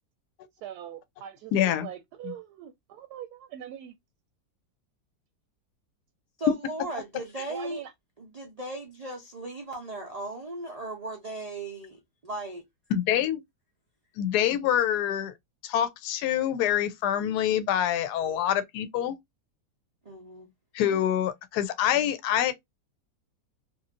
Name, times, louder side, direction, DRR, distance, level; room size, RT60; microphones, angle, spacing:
voice 1, 0.6-3.9 7.5-7.9, right 10 dB, 75° right, 1.0 m, -42 dB
voice 2, 1.5-1.9 2.2-2.3 12.9-13.4 14.2-15.3 15.6-19.2 20.7-22.5, left 10 dB, 75° left, 1.1 m, -26 dB
voice 3, 6.4-7.8 8.2-12.6 20.0-20.5, right 2 dB, 90° right, 0.3 m, -37 dB
3.0 x 2.6 x 2.5 m
omnidirectional pair, 1.9 m